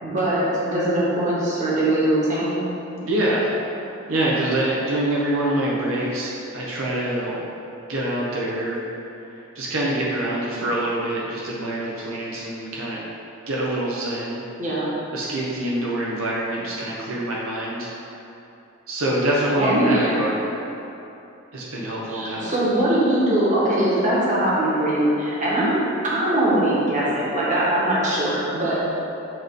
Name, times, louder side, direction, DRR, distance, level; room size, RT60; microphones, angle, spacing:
voice 1, 0.0-2.6 14.6-14.9 19.5-20.2 22.1-25.8 26.0-28.8, right 1 dB, 40° right, -7 dB, 1.4 m, -21 dB
voice 2, 3.0-3.5 4.1-7.4 7.9-8.8 9.5-13.0 13.5-14.4 15.1-17.9 18.9-20.4 21.5-22.6, right 1 dB, 85° right, -5 dB, 0.9 m, -25 dB
7.8 x 3.6 x 3.8 m, 2.9 s
head